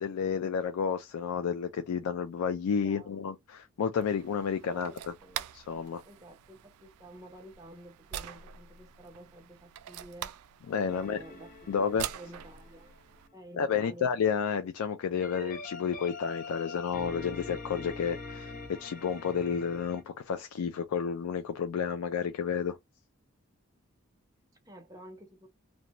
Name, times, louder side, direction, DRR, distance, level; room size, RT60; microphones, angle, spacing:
voice 1, 0.0-5.1 5.5-6.0 10.7-11.2 11.7-12.0 13.5-22.8, left 6 dB, 85° left, 0.4 m, -31 dB
voice 2, 2.7-3.3 4.7-10.3 10.9-12.9 13.3-14.1 24.6-25.5, right 1 dB, 15° right, 0.7 m, -51 dB
sound 1, 4.0-13.3, right 11 dB, 85° right, 0.3 m, -44 dB
sound 2, 10.9-13.3 15.2-20.0, left 3 dB, 35° left, 0.6 m, -44 dB
2.5 x 2.2 x 2.9 m
head